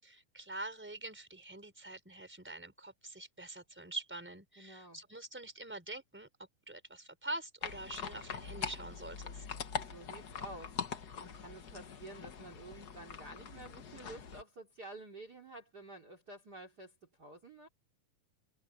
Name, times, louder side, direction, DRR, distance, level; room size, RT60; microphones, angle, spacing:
voice 1, 0.0-9.5, right 2 dB, 5° right, 4.3 m, -45 dB
voice 2, 4.6-5.0 9.8-10.8 11.2-17.7, right 2 dB, 30° right, 3.4 m, -51 dB
sound 1, 7.6-14.4, left 6 dB, 55° left, 1.1 m, -43 dB
omnidirectional pair, 3.6 m